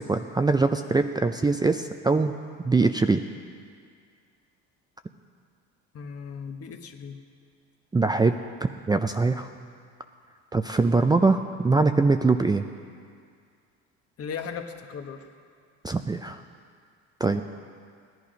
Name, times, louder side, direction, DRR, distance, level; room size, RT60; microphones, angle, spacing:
voice 1, 0.0-2.3 2.6-3.2 7.9-9.5 10.5-12.6 15.8-16.4 17.2-17.4, right 3 dB, 15° right, 7 dB, 0.5 m, -23 dB
voice 2, 5.9-7.2 14.2-15.3, left 6 dB, 45° left, 5 dB, 1.3 m, -37 dB
16.5 x 11.0 x 5.2 m, 2.2 s
supercardioid pair, 95°, 32 cm